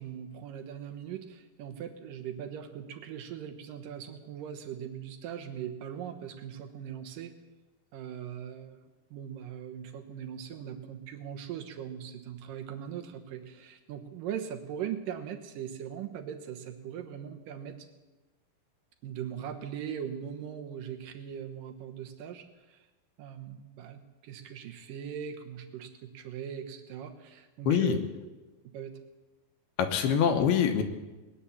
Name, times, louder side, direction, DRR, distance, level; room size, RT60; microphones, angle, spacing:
voice 1, 0.0-7.3 7.9-17.7 19.0-22.8 23.2-28.0 28.7-28.9, right 9 dB, 70° right, 5 dB, 2.4 m, -40 dB
voice 2, 27.7-28.0 29.8-30.8, left 8 dB, 75° left, 5 dB, 2.9 m, -24 dB
20.0 x 10.0 x 7.1 m, 1.2 s
omnidirectional pair, 4.7 m